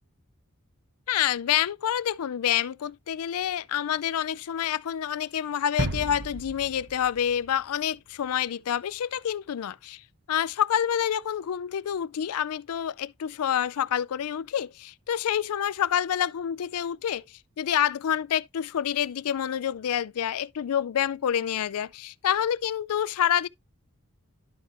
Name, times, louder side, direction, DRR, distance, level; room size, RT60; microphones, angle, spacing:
voice 1, 1.1-10.0 10.3-17.2 17.6-23.5, left 9 dB, 80° left, 0.4 m, -27 dB
sound 1, 5.8-8.3, right 2 dB, 55° right, 1.0 m, -34 dB
12.0 x 4.4 x 2.9 m
head